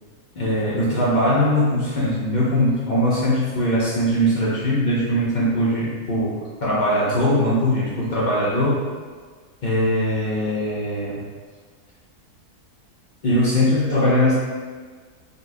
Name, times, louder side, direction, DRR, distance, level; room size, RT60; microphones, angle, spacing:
voice 1, 0.3-8.9 9.6-11.2 13.2-14.3, equal, 90° left, -9 dB, 0.4 m, -21 dB
3.9 x 2.3 x 2.6 m, 1.5 s
omnidirectional pair, 1.6 m